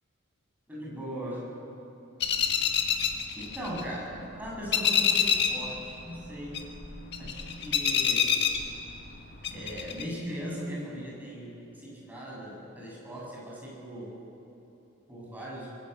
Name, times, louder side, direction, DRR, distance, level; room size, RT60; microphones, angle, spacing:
voice 1, 0.7-1.4 3.4-4.0 4.4-6.6 7.2-8.3 9.5-14.1 15.1-15.7, equal, 10° right, -5 dB, 7.5 m, -39 dB
sound 1, 2.2-4.2 4.5-5.7 6.0-9.1 9.4-10.0, left 7 dB, 55° left, 1.8 m, -26 dB
26.5 x 19.0 x 8.2 m, 3.0 s
head